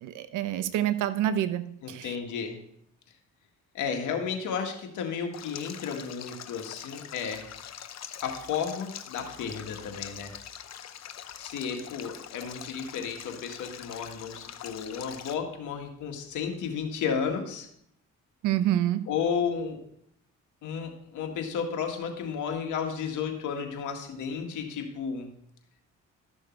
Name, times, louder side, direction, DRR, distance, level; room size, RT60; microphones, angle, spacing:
voice 1, 0.0-2.2 18.4-19.1, right 12 dB, 90° right, 12 dB, 0.8 m, -27 dB
voice 2, 1.8-2.6 3.7-7.4 8.2-10.3 11.4-17.7 19.1-19.8 20.6-25.3, left 6 dB, 85° left, 3 dB, 1.9 m, -33 dB
Stream, 5.3-15.3, left 10 dB, 60° left, 0.8 m, -43 dB
13.0 x 6.5 x 4.6 m, 0.71 s
cardioid pair, 90°, 30 cm